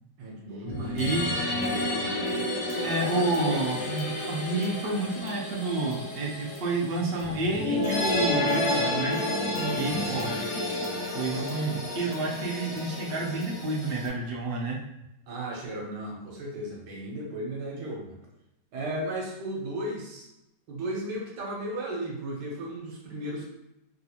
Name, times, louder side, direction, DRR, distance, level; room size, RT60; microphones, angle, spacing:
voice 1, 0.2-1.1 9.6-10.3 15.3-18.2 18.7-20.3 20.7-23.5, right 1 dB, 80° right, -2 dB, 1.4 m, -35 dB
sound 1, 0.7-14.1, left 1 dB, 55° left, 0.8 m, -31 dB
voice 2, 0.9-1.3 2.8-9.2 9.7-10.5 11.1-14.8, right 2 dB, 60° right, -3 dB, 0.5 m, -29 dB
3.5 x 2.4 x 2.8 m, 0.87 s
omnidirectional pair, 1.9 m